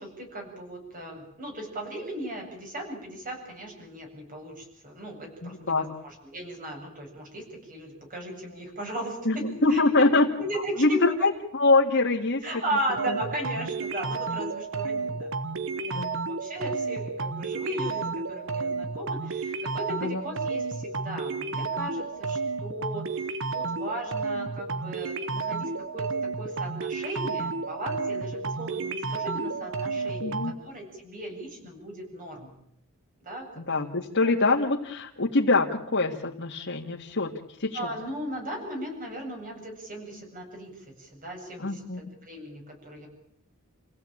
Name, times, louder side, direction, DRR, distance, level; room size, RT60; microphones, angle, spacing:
voice 1, 0.0-9.2 9.5-10.1 10.4-11.3 12.4-23.0 23.5-26.1 26.4-32.5 33.2-33.5 34.2-34.3 37.7-40.7 41.0-43.1, right 1 dB, 40° right, 1 dB, 7.9 m, -37 dB
voice 2, 5.4-5.9 9.3-10.3 10.8-12.4 13.1-13.2 15.9-16.2 20.0-20.2 30.2-30.5 33.6-37.3 37.6-37.8 41.6-42.0, left 3 dB, 60° left, -2 dB, 2.1 m, -24 dB
sound 1, 13.0-30.5, right 4 dB, 65° right, 1.4 m, -31 dB
28.0 x 16.5 x 8.9 m, 0.75 s
head